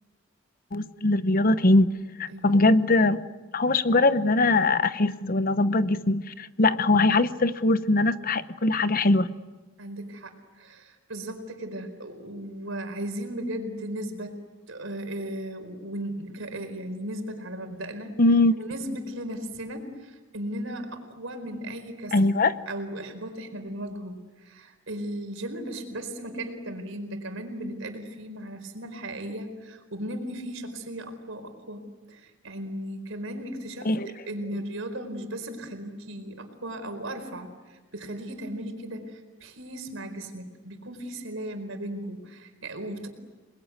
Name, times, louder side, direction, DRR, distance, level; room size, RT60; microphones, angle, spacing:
voice 1, 0.7-1.9 2.2-3.2 3.5-9.3 18.2-18.5 22.1-22.5 33.8-34.1, left 2 dB, 45° left, 13 dB, 0.9 m, -21 dB
voice 2, 9.8-14.4 14.7-18.2 18.6-33.9 34.3-43.1, right 1 dB, 70° right, 6 dB, 4.6 m, -36 dB
29.5 x 21.0 x 9.6 m, 1.2 s
head